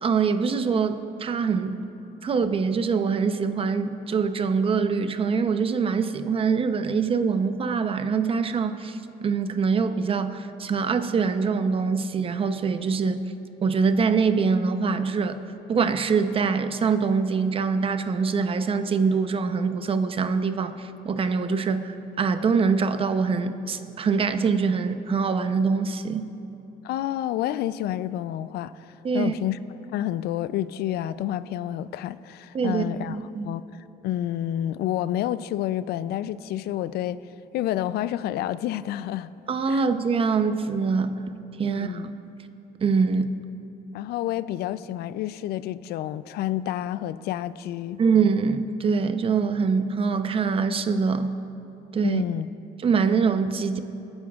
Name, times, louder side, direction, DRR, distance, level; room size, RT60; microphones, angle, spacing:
voice 1, 0.0-1.8 2.2-13.2 13.6-15.4 15.7-26.3 29.0-29.3 32.5-33.5 39.5-41.2 41.6-42.0 42.8-43.3 48.0-51.4 51.9-52.2 52.8-53.8, right 5 dB, 35° right, 9 dB, 0.7 m, -24 dB
voice 2, 26.8-29.6 29.9-33.2 33.4-33.6 34.0-37.2 37.5-39.3 39.7-39.8 41.7-42.1 43.9-48.0 52.0-52.5, left 12 dB, 70° left, 15 dB, 0.4 m, -29 dB
28.5 x 9.5 x 2.4 m, 2.8 s
cardioid pair, 110°, 17 cm